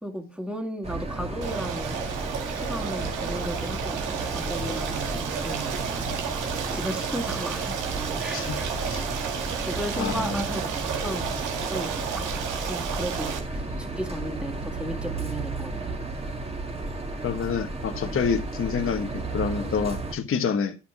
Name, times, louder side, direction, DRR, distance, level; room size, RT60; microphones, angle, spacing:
voice 1, 0.0-2.0 2.5-5.9 6.7-7.8 8.2-8.8 9.7-11.4 11.7-16.0, equal, 5° right, 2.2 m, -35 dB
sound 1, 0.8-20.2, right 2 dB, 20° right, 1.9 m, -33 dB
Stream, 1.4-13.4, right 7 dB, 90° right, 2.0 m, -32 dB
voice 2, 10.0-10.4 17.2-20.8, left 6 dB, 45° left, 1.2 m, -28 dB
10.0 x 5.7 x 5.9 m
cardioid pair, 90°, 30 cm